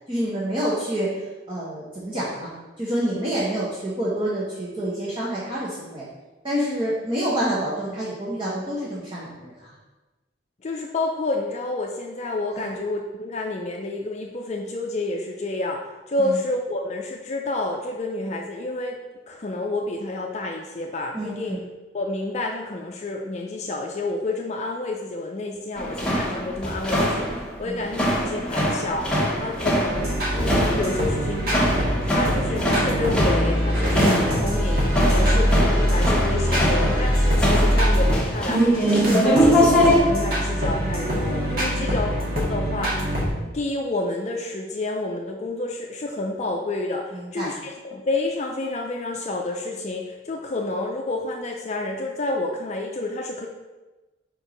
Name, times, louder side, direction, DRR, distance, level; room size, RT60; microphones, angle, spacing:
voice 1, 0.1-2.5 2.8-6.1 6.4-9.7 12.6-12.7 16.2-16.4 21.1-21.7 27.6-27.9 35.2-35.5 41.8-42.0 47.1-47.6, right 1 dB, 30° right, -7 dB, 1.1 m, -28 dB
voice 2, 10.6-15.8 16.1-19.0 19.3-21.6 21.9-31.7 32.0-38.8 39.1-43.0 43.4-53.5, left 2 dB, 40° left, 1 dB, 0.5 m, -29 dB
sound 1, 25.8-40.0, equal, 5° left, 1.1 m, -23 dB
sound 2, 29.9-38.2 38.7-43.3, equal, 55° right, 1.8 m, -23 dB
4.5 x 4.5 x 5.1 m, 1.2 s
head